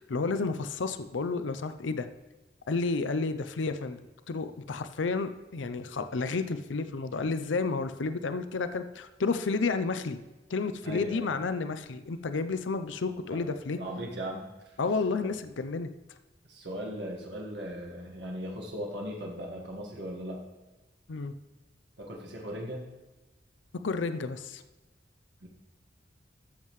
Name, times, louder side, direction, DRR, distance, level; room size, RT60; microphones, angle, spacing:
voice 1, 0.0-2.1 2.7-10.2 10.5-13.8 14.8-15.9 21.1-21.3 23.8-24.6, left 4 dB, 90° left, 10 dB, 0.6 m, -31 dB
voice 2, 10.8-11.3 13.3-13.4 13.8-14.8 16.5-20.4 22.0-22.8 25.4-25.5, equal, 70° right, -1 dB, 1.7 m, -38 dB
13.0 x 7.4 x 3.2 m, 1.1 s
head